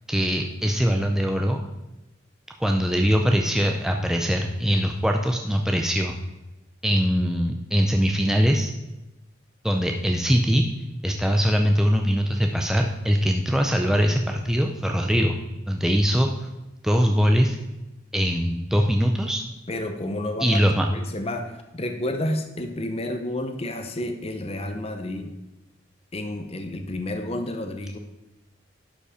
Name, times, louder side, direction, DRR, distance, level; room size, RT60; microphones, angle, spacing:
voice 1, 0.1-1.6 2.6-6.1 6.8-8.7 9.6-10.6 11.0-15.4 15.7-16.3 16.8-17.6 18.1-19.4 20.4-20.9, equal, 5° right, 3 dB, 0.5 m, -22 dB
voice 2, 19.7-25.3 26.1-28.0, left 1 dB, 30° left, 6 dB, 0.7 m, -30 dB
11.5 x 5.2 x 5.0 m, 0.99 s
head